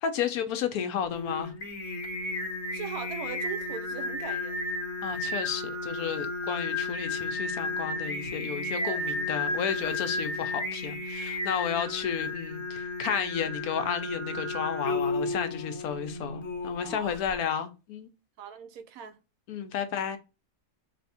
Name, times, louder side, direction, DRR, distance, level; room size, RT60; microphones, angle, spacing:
voice 1, 0.0-1.5 5.0-18.1 19.5-20.2, left 8 dB, 85° left, 1.1 m, -32 dB
Singing, 1.1-17.4, left 2 dB, 55° left, 1.1 m, -33 dB
voice 2, 2.7-4.7 8.8-9.1 16.8-17.2 18.4-19.2, right 9 dB, 75° right, 1.0 m, -41 dB
3.4 x 2.8 x 4.0 m
omnidirectional pair, 1.5 m